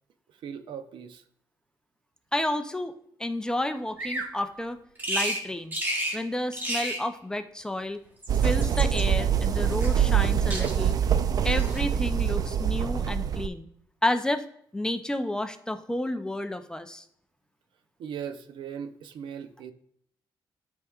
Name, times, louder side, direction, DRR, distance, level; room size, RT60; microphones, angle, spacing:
voice 1, 0.4-1.2 18.0-19.7, right 8 dB, 90° right, 9 dB, 0.6 m, -38 dB
voice 2, 2.3-2.9 3.2-4.8 5.1-5.8 6.1-8.0 8.4-11.0 11.4-13.7 14.0-14.4 14.7-17.0, left 1 dB, 10° left, 8 dB, 0.5 m, -30 dB
Bird vocalization bird call bird song, 4.0-4.3 5.0-5.4 5.7-6.2 6.5-7.0 8.0-9.0 9.8-10.2 10.5-11.0 11.5-11.8, right 1 dB, 20° right, 1.3 m, -32 dB
sound 1, 8.3-13.5, right 8 dB, 50° right, 0.4 m, -24 dB
12.5 x 4.8 x 2.4 m, 0.68 s
wide cardioid pair, 145°, 8 cm